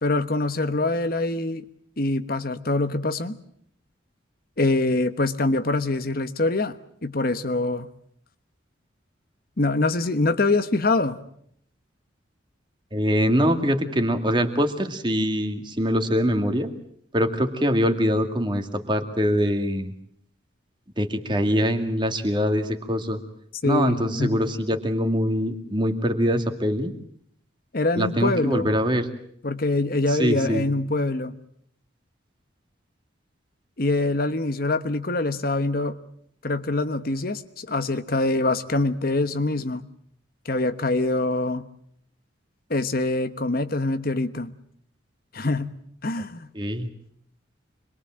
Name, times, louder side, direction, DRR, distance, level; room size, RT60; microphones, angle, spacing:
voice 1, 0.0-1.6 2.0-3.4 4.6-7.9 9.6-11.2 23.6-24.4 27.7-28.7 29.4-31.3 33.8-36.0 36.4-39.8 40.4-41.7 42.7-44.5 45.3-45.7 46.0-46.5, left 2 dB, 50° left, 10 dB, 1.1 m, -24 dB
voice 2, 12.9-16.7 17.1-19.9 21.0-23.2 23.6-26.9 28.0-29.1 30.1-30.6 46.5-46.9, equal, 25° right, 6 dB, 2.2 m, -23 dB
26.5 x 22.0 x 7.6 m, 0.68 s
head